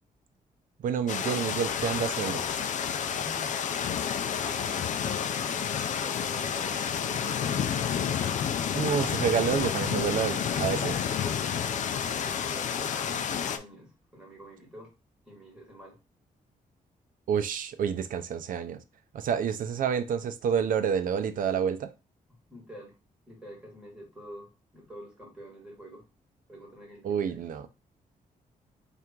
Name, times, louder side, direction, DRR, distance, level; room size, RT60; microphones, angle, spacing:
voice 1, 0.8-2.5 8.7-11.0 17.3-18.8 19.1-21.9 27.0-27.7, right 7 dB, 70° right, 0.5 m, -28 dB
sound 1, 1.1-13.6, left 8 dB, 55° left, 0.4 m, -30 dB
voice 2, 3.2-6.8 7.1-7.6 12.0-14.9 15.3-16.0 22.5-23.0 23.3-26.0 26.5-27.5, equal, 5° right, 2.1 m, -47 dB
3.4 x 2.5 x 4.5 m
cardioid pair, 125°, 15 cm